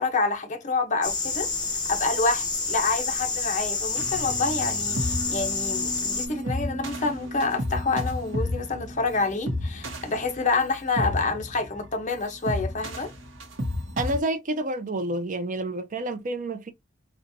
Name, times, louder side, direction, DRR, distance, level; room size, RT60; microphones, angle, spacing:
voice 1, 0.0-1.5 1.9-13.1, left 3 dB, 40° left, 0.8 m, -27 dB
sound 1, 1.0-6.3, left 4 dB, 20° left, 1.1 m, -28 dB
sound 2, 4.0-14.2, left 1 dB, 70° right, 0.9 m, -32 dB
voice 2, 14.0-16.7, right 1 dB, 45° right, 0.5 m, -29 dB
3.9 x 2.4 x 2.6 m
head